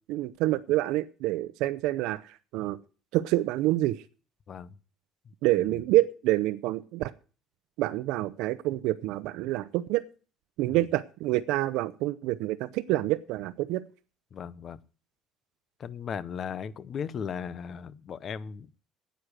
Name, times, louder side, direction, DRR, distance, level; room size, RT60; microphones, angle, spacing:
voice 1, 0.1-2.2 2.5-2.8 3.1-4.0 5.4-7.1 7.8-10.0 10.6-13.8, right 16 dB, 80° right, 14 dB, 0.6 m, -27 dB
voice 2, 4.5-4.8 5.6-5.8 10.7-10.9 14.3-14.8 15.8-18.8, left 7 dB, 35° left, 18 dB, 0.7 m, -37 dB
9.7 x 9.1 x 6.5 m, 0.38 s
cardioid pair, 160°, 0 cm